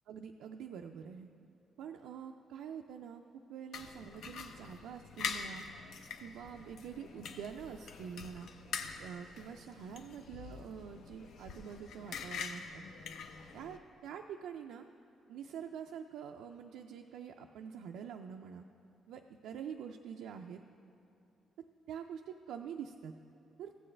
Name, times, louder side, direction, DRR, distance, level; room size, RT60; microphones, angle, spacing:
voice 1, 0.1-1.3 1.8-5.6 6.2-8.5 9.0-12.8 13.5-14.9 15.3-18.6 19.1-20.6 21.6-23.1 23.6-23.7, right 7 dB, 85° right, 3 dB, 0.3 m, -46 dB
sound 1, 3.7-13.8, left 6 dB, 75° left, 0.6 m, -45 dB
14.5 x 7.7 x 3.3 m, 2.7 s
cardioid pair, 90°, 0 cm